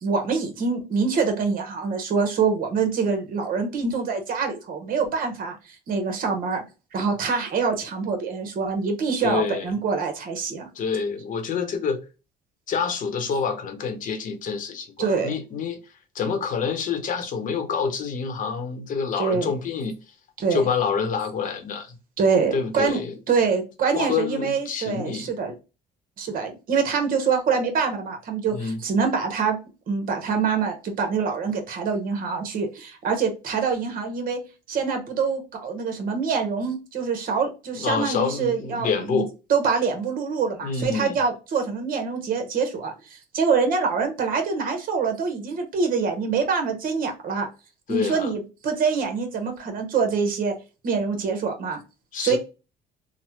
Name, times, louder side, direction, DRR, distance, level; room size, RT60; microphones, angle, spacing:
voice 1, 0.0-6.6 6.9-10.7 15.0-15.3 19.2-19.5 20.4-20.7 22.2-23.0 23.3-25.5 26.2-29.6 29.9-34.4 34.7-39.2 39.5-47.5 47.9-50.5 50.8-51.8 52.2-52.4, right 5 dB, 55° right, 1.0 m, -25 dB
voice 2, 9.2-9.7 10.7-12.0 12.7-15.8 16.1-20.0 20.5-21.9 22.5-23.1 23.9-25.3 28.5-28.8 37.7-39.3 40.6-41.1 47.9-48.3 52.1-52.4, left 6 dB, 50° left, 0.8 m, -27 dB
3.1 x 2.1 x 3.0 m
cardioid pair, 110°, 17 cm